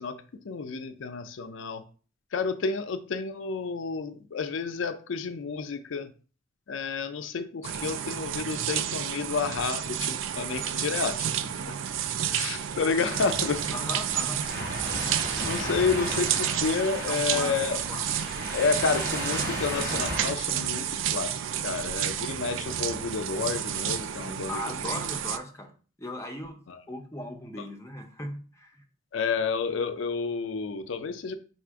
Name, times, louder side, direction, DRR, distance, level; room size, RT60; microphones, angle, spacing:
voice 1, 0.0-1.8 2.3-6.1 6.7-11.5 12.3-13.6 14.9-15.1 15.4-17.8 18.5-21.4 21.6-25.0 26.7-26.8 29.1-31.3, left 5 dB, 90° left, 9 dB, 0.4 m, -30 dB
sound 1, 7.6-25.4, right 9 dB, 85° right, 0.4 m, -31 dB
sound 2, 13.1-20.3, equal, 50° right, 1.1 m, -35 dB
voice 2, 13.7-14.5 17.1-18.1 24.5-25.7 26.0-26.6 26.9-28.8, left 1 dB, 15° left, 2 dB, 0.5 m, -37 dB
4.2 x 2.5 x 4.5 m, 0.39 s
head